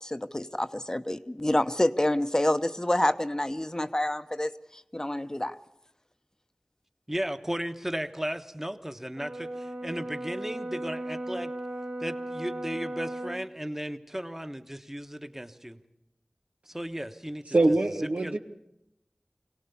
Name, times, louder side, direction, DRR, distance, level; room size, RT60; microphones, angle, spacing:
voice 1, 0.0-5.6, left 1 dB, 25° left, 11 dB, 0.8 m, -28 dB
voice 2, 7.1-11.5 12.0-15.8 16.7-17.6 18.2-18.4, equal, 15° right, 9 dB, 1.1 m, -35 dB
Brass instrument, 9.2-13.4, right 1 dB, 65° right, 1.9 m, -36 dB
voice 3, 17.5-18.4, right 2 dB, 85° right, 6 dB, 1.2 m, -23 dB
22.5 x 17.5 x 7.0 m, 0.82 s
wide cardioid pair, 40°, 2 cm